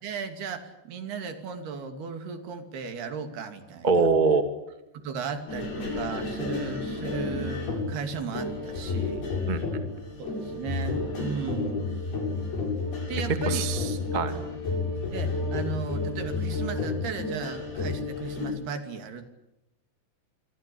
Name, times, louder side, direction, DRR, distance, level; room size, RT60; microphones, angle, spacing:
voice 1, 0.0-4.1 4.9-9.3 10.2-11.9 13.1-13.7 14.1-14.5 15.1-19.3, right 5 dB, 70° right, 8 dB, 4.6 m, -36 dB
voice 2, 3.8-4.4 9.5-9.8 13.4-14.3, right 4 dB, 25° right, 8 dB, 1.1 m, -24 dB
sound 1, 5.5-18.5, left 3 dB, 70° left, 9.8 m, -31 dB
27.5 x 23.5 x 8.6 m, 0.90 s
omnidirectional pair, 4.7 m